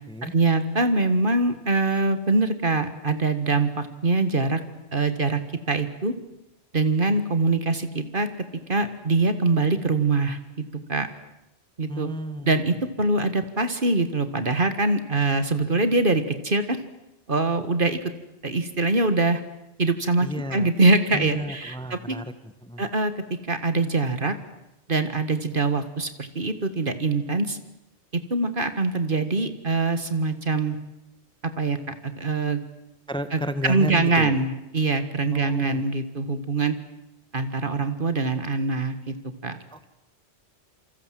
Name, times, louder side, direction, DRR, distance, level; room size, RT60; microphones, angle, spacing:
voice 1, 0.2-4.6 4.9-5.4 5.7-6.1 6.7-8.3 8.7-10.4 10.9-11.1 11.8-12.1 12.4-16.8 17.3-18.0 18.4-19.4 19.8-22.2 22.8-23.1 23.5-24.3 24.9-27.6 28.1-30.8 31.6-32.6 33.3-36.8 37.3-39.1 39.4-39.6, right 3 dB, 45° right, 10 dB, 2.0 m, -23 dB
voice 2, 11.9-12.5 20.2-20.7 21.1-22.9 33.1-34.3 35.3-35.9 39.7-39.8, equal, 5° left, 12 dB, 1.2 m, -32 dB
28.0 x 25.0 x 7.7 m, 0.89 s
omnidirectional pair, 1.2 m